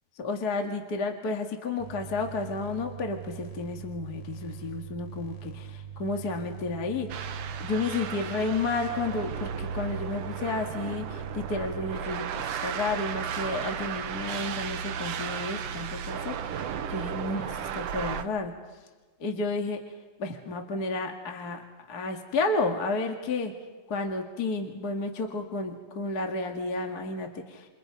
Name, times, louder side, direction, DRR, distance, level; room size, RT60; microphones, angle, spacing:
voice 1, 0.2-18.5 19.2-19.8 20.2-21.6 21.9-23.5 23.9-27.7, left 3 dB, 35° left, 3 dB, 2.2 m, -32 dB
sound 1, 1.8-11.9, right 8 dB, 85° left, 4.1 m, -42 dB
sound 2, 7.1-18.2, right 7 dB, 65° right, 1.9 m, -34 dB
29.5 x 28.0 x 5.3 m, 1.3 s
omnidirectional pair, 3.4 m